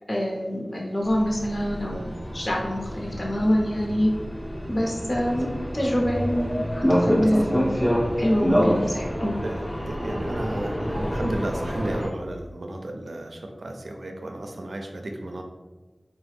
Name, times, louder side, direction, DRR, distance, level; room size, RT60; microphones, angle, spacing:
voice 1, 0.1-4.1 4.7-5.5 5.7-7.7 8.2-9.3, equal, 55° left, -2 dB, 0.8 m, -25 dB
sound 1, 1.0-12.1, equal, 15° left, 0.5 m, -27 dB
voice 2, 9.4-15.4, right 1 dB, 90° right, 3 dB, 0.4 m, -34 dB
3.2 x 2.2 x 3.3 m, 1.2 s
wide cardioid pair, 45°, 0 cm